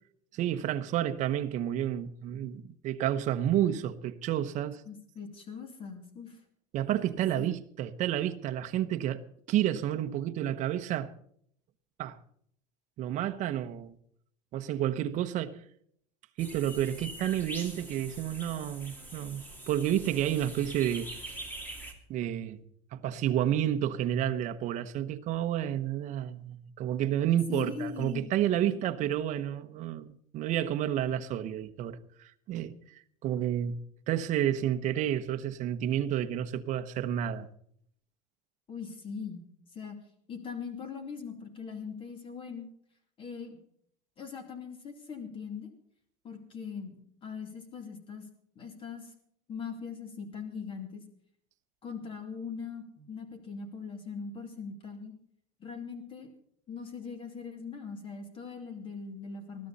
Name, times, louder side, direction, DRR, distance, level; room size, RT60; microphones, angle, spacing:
voice 1, 0.3-4.8 6.7-9.2 9.5-11.1 12.0-12.2 13.0-13.9 14.5-15.6 16.4-21.1 22.1-22.6 22.9-32.7 33.2-33.8 34.1-37.5, right 11 dB, 40° right, 1.0 m, -30 dB
voice 2, 4.9-6.4 7.4-7.5 27.5-28.3 28.7-28.8 38.7-39.4 39.7-40.0 40.3-42.7 43.2-43.6 44.2-45.7 46.2-48.3 48.6-49.1 49.5-51.0 51.8-55.1 55.6-56.3 56.7-59.7, left 5 dB, 25° left, 2.7 m, -41 dB
sound 1, 16.4-21.9, right 1 dB, 10° left, 2.5 m, -44 dB
20.5 x 12.5 x 4.2 m
cardioid pair, 170°, 20 cm